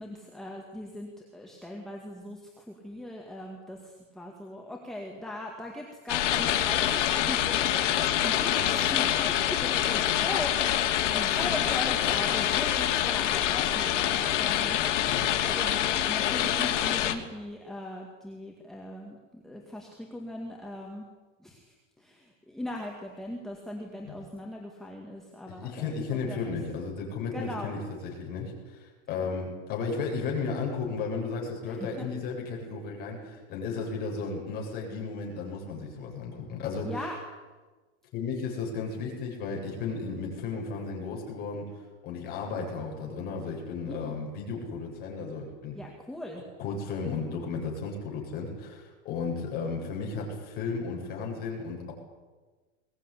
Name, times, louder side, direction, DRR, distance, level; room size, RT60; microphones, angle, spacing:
voice 1, 0.0-14.8 15.4-15.8 16.1-21.1 21.4-26.6 27.3-27.7 31.7-32.1 36.8-37.1 43.8-44.2 45.7-46.4, left 1 dB, ahead, -1 dB, 2.0 m, -39 dB
sound 1, 6.1-17.1, left 11 dB, 75° left, 2.8 m, -26 dB
voice 2, 25.5-27.8 28.2-37.1 38.1-41.6 42.0-45.8 46.6-51.9, left 4 dB, 25° left, -1 dB, 7.8 m, -34 dB
22.0 x 20.0 x 10.0 m, 1.3 s
supercardioid pair, 175°, 37 cm